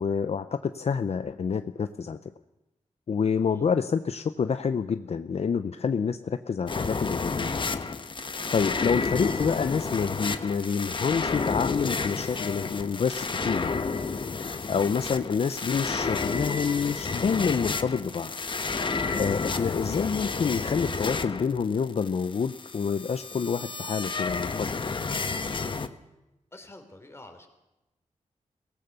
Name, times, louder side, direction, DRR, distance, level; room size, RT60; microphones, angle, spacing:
voice 1, 0.0-2.2 3.1-7.5 8.5-13.8 14.4-18.3 19.2-24.9, left 6 dB, 55° left, 10 dB, 0.7 m, -28 dB
sound 1, 6.7-25.9, left 4 dB, 40° left, 1.1 m, -31 dB
voice 2, 26.5-27.5, left 2 dB, 20° left, 5 dB, 3.5 m, -47 dB
23.5 x 17.5 x 6.9 m, 0.97 s
wide cardioid pair, 110°, 13 cm